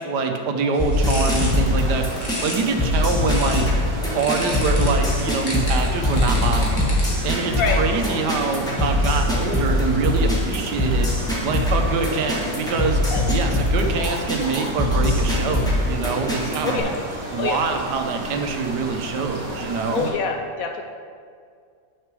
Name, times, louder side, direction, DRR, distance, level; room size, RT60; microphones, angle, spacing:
voice 1, 0.0-2.1 2.4-3.7 4.1-6.9 7.2-11.1 11.4-13.0 13.3-16.9 17.3-20.1, right 4 dB, 75° right, 4 dB, 1.4 m, -25 dB
sound 1, 0.7-3.8 4.2-7.3, left 1 dB, 30° left, 1.5 m, -33 dB
sound 2, 0.8-16.8, left 1 dB, ahead, 1.5 m, -22 dB
sound 3, 0.9-20.1, right 1 dB, 20° right, 1.1 m, -34 dB
voice 2, 19.9-20.8, left 5 dB, 70° left, 4 dB, 0.9 m, -25 dB
6.4 x 5.9 x 6.1 m, 2.2 s
omnidirectional pair, 1.8 m